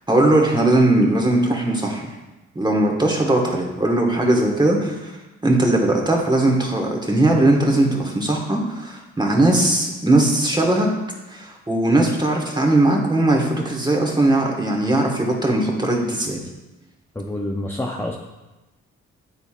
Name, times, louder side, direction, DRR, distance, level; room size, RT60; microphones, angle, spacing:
voice 1, 0.1-2.1 2.5-5.2 5.4-10.9 11.3-16.4, right 1 dB, 15° right, 0 dB, 1.6 m, -19 dB
voice 2, 17.1-18.1, left 1 dB, 10° left, -1 dB, 0.7 m, -27 dB
9.8 x 4.0 x 2.5 m, 1.1 s
supercardioid pair, 60°, 30 cm